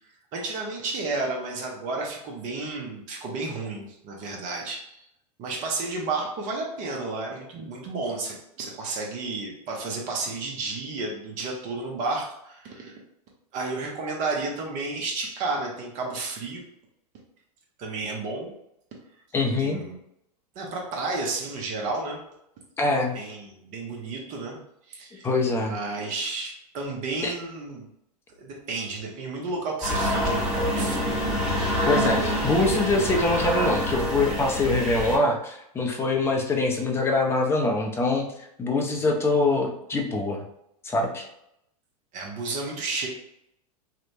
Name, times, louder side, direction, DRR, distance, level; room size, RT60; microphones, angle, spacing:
voice 1, 0.3-5.0 5.4-13.0 13.5-16.6 17.8-18.5 19.6-20.0 20.5-22.2 23.1-24.6 24.9-25.3 25.6-27.9 28.4-31.2 42.1-43.1, right 3 dB, 40° right, 0 dB, 0.7 m, -32 dB
voice 2, 19.3-19.8 22.8-23.2 25.2-25.7 27.2-27.3 31.9-38.3 38.6-40.4 40.8-41.3, left 2 dB, 10° left, 1 dB, 0.5 m, -24 dB
sound 1, 29.8-35.2, equal, 5° right, 1.1 m, -26 dB
2.8 x 2.1 x 2.6 m, 0.78 s
figure-of-eight pair, 95°, 21 cm